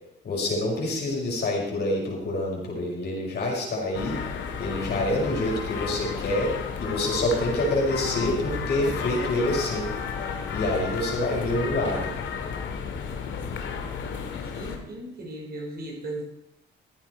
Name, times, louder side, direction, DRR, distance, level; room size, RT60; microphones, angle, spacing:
voice 1, 0.2-4.2 4.6-9.9 10.5-12.1, left 1 dB, 55° left, -2 dB, 5.6 m, -27 dB
sound 1, 3.9-14.8, left 6 dB, 70° left, 2.0 m, -32 dB
voice 2, 14.4-16.2, right 1 dB, 50° right, -1 dB, 5.2 m, -37 dB
15.0 x 9.4 x 4.6 m, 0.82 s
cardioid pair, 90°, 20 cm